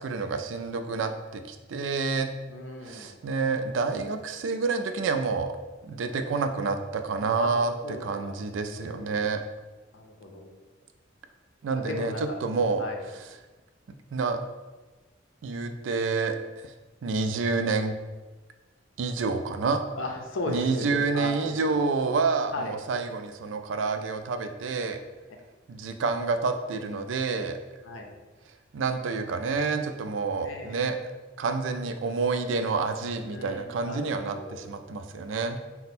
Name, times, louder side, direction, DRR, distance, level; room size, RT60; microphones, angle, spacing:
voice 1, 0.0-2.3 2.8-5.6 5.8-9.4 11.6-12.9 14.1-14.4 15.4-16.4 16.6-16.7 17.0-18.0 19.0-19.8 20.5-25.0 25.7-27.6 28.7-31.0 31.4-35.6, right 4 dB, 70° right, 8 dB, 0.4 m, -28 dB
voice 2, 2.5-3.2 7.4-7.5 7.8-8.3 8.8-9.3 9.9-10.5 11.7-12.4 12.8-13.1 20.0-21.3 21.6-21.8 22.5-22.7 27.8-28.1 30.4-30.8 33.3-34.7 35.3-35.4, left 2 dB, 80° left, 3 dB, 0.6 m, -36 dB
4.2 x 2.1 x 4.2 m, 1.2 s
head